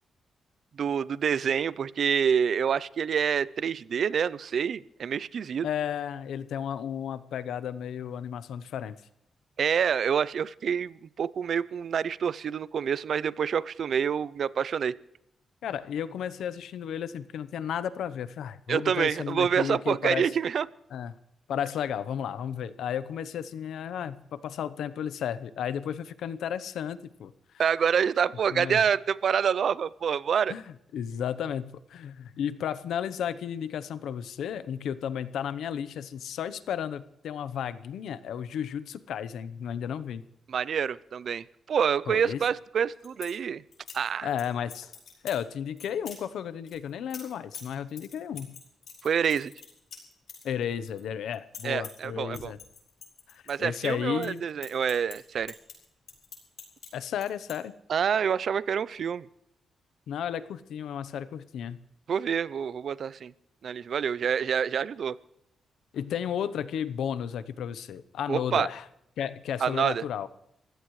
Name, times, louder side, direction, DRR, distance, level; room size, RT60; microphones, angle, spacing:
voice 1, 0.8-5.7 9.6-15.0 18.7-20.7 27.6-30.5 40.5-43.6 43.9-44.3 49.0-49.5 51.6-52.5 53.5-55.5 57.9-59.3 62.1-63.3 63.6-65.2 68.3-68.7 69.6-70.0, right 7 dB, 60° right, 19 dB, 0.5 m, -27 dB
voice 2, 5.6-9.0 15.6-20.3 20.9-21.1 21.5-27.3 28.5-28.8 30.5-30.6 30.9-40.2 42.1-42.4 44.2-44.9 45.2-48.5 50.4-52.6 53.3-54.5 56.9-57.7 60.1-61.8 65.9-68.8 69.2-70.3, left 9 dB, 90° left, 15 dB, 0.8 m, -33 dB
sound 1, 42.8-43.3 43.7-44.4 44.7-45.4 45.8-46.2 46.7-51.0 51.3-52.0 52.3-53.9 54.1-56.9 57.2-57.5, left 7 dB, 65° left, 6.0 m, -45 dB
25.5 x 16.0 x 3.2 m, 0.81 s
cardioid pair, 125°, 0 cm